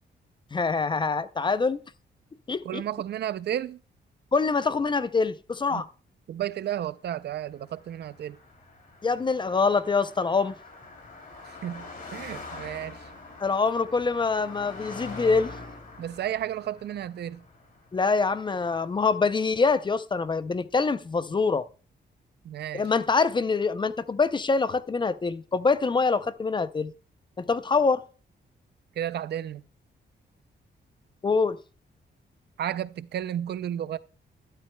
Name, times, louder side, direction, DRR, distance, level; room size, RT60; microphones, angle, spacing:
voice 1, 0.5-1.8 2.5-2.8 4.3-5.9 9.0-10.6 13.4-15.5 17.9-21.6 22.7-26.9 27.5-28.0 31.2-31.6, left 4 dB, 25° left, 0.5 m, -25 dB
voice 2, 2.6-3.8 5.7-5.8 6.3-8.4 11.5-13.1 16.0-17.4 22.4-22.9 29.0-29.6 32.6-34.0, right 11 dB, 65° right, 0.4 m, -32 dB
Car passing by, 7.5-19.0, left 3 dB, 45° left, 3.0 m, -44 dB
12.0 x 12.0 x 2.2 m
cardioid pair, 120°, 19 cm